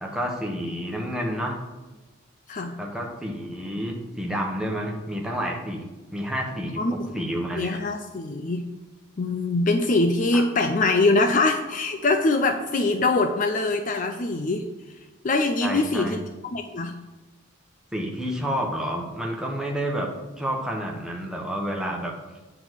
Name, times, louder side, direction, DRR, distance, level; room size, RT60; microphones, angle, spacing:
voice 1, 0.0-1.6 2.8-7.8 10.3-10.4 15.6-16.2 17.9-20.1 20.4-22.1, equal, 5° right, -1 dB, 1.1 m, -29 dB
voice 2, 6.8-7.2 7.6-8.6 9.2-14.7 15.2-16.2 16.5-17.0, left 2 dB, 35° left, 6 dB, 0.4 m, -23 dB
8.7 x 4.0 x 6.2 m, 1.2 s
head